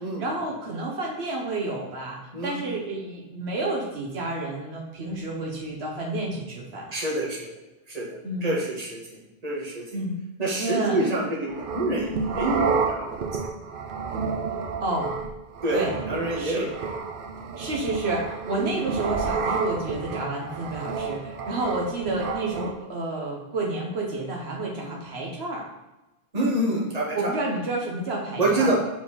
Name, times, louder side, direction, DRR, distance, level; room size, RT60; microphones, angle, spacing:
voice 1, 0.0-6.9 8.2-8.6 9.9-10.2 10.6-11.0 14.8-15.2 15.7-16.0 16.4-16.7 17.6-25.7 27.1-28.9, right 2 dB, 80° right, -1 dB, 1.3 m, -30 dB
voice 2, 6.9-7.5 7.9-9.0 9.4-9.8 10.4-13.4 15.6-16.6 18.6-18.7 26.3-27.3 28.4-28.9, right 1 dB, 35° right, -3 dB, 1.5 m, -27 dB
sound 1, 11.5-22.7, right 5 dB, 60° right, 0.8 m, -30 dB
4.7 x 4.5 x 5.5 m, 0.99 s
omnidirectional pair, 1.1 m